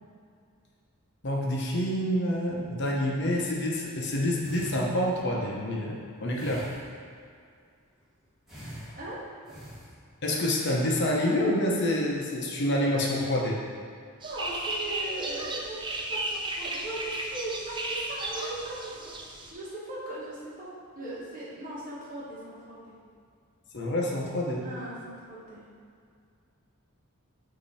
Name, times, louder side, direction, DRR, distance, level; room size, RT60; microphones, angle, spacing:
voice 1, 1.2-6.7 10.2-13.6 23.7-24.6, left 1 dB, 55° left, -2 dB, 0.9 m, -27 dB
sound 1, 4.4-5.3 6.3-7.3 8.5-10.3 10.9-11.3, equal, ahead, 1.5 m, -45 dB
sound 2, 14.2-19.5, right 2 dB, 20° right, 0.5 m, -34 dB
voice 2, 14.2-22.9 24.6-25.6, right 1 dB, 40° right, -8 dB, 1.4 m, -39 dB
8.6 x 2.9 x 4.2 m, 2.2 s
head